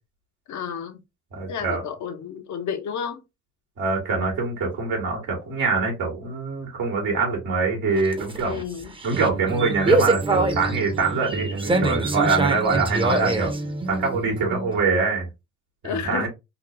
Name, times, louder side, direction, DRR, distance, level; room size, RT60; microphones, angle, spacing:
voice 1, 0.5-1.0 1.5-3.2 8.5-8.9 15.8-16.3, left 7 dB, 70° left, 1.0 m, -31 dB
voice 2, 1.3-1.8 3.8-8.6 9.0-13.5 13.9-15.3 15.8-16.3, right 4 dB, 85° right, 1.9 m, -24 dB
sound 1, 7.9-14.7, right 2 dB, 15° right, 0.7 m, -25 dB
4.1 x 2.6 x 3.1 m
cardioid pair, 90°, 30 cm